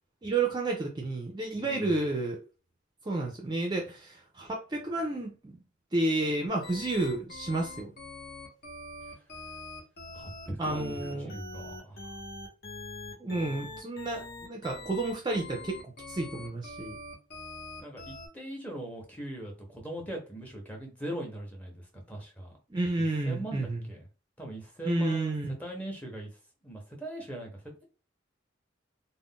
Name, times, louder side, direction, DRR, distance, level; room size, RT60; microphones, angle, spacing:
voice 1, 0.2-2.4 3.0-5.6 5.9-7.9 10.6-11.4 13.2-17.0 22.7-23.8 24.8-25.6, right 2 dB, 20° right, 1 dB, 0.4 m, -31 dB
voice 2, 1.5-1.9 10.1-12.1 17.8-22.5 23.3-24.0 24.4-25.3 25.6-26.3 26.6-27.8, right 1 dB, 10° left, 0 dB, 0.7 m, -40 dB
sound 1, 6.6-18.3, left 2 dB, 50° left, 0.9 m, -43 dB
2.4 x 2.0 x 3.6 m, 0.34 s
head